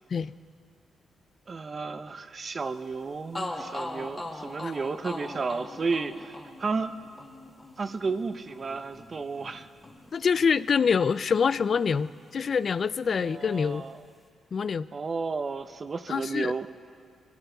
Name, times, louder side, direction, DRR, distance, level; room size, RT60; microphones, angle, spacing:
voice 1, 1.5-6.9 7.8-9.7 13.1-14.0 14.9-16.7, right 4 dB, 40° right, 10 dB, 0.7 m, -32 dB
sound 1, 2.9-3.0 3.3-11.2 11.5-12.6, left 2 dB, 25° left, 2.0 m, -41 dB
voice 2, 10.1-13.8 14.5-14.9 16.1-16.5, left 6 dB, 50° left, 16 dB, 0.4 m, -25 dB
22.5 x 14.0 x 4.0 m, 2.2 s
cardioid pair, 75°, 0 cm